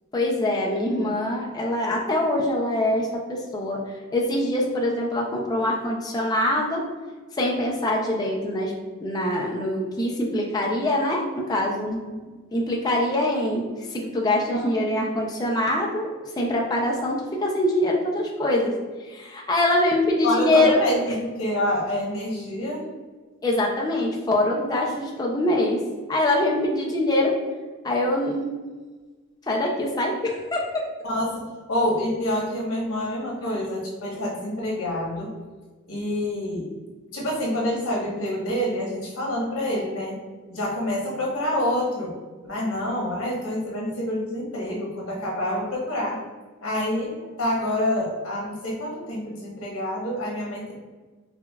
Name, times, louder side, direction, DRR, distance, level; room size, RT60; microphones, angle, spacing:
voice 1, 0.1-6.8 7.3-8.7 9.0-12.0 12.5-20.8 23.4-25.8 26.1-27.3 27.8-28.4 29.5-30.8, left 1 dB, 20° left, -1 dB, 0.4 m, -24 dB
voice 2, 11.8-12.3 14.5-14.7 20.2-22.8 31.1-35.3 35.9-36.7 37.1-40.1 40.5-42.1 42.5-46.2 46.6-50.7, left 1 dB, 90° left, -4 dB, 1.1 m, -27 dB
5.0 x 2.3 x 2.3 m, 1.3 s
head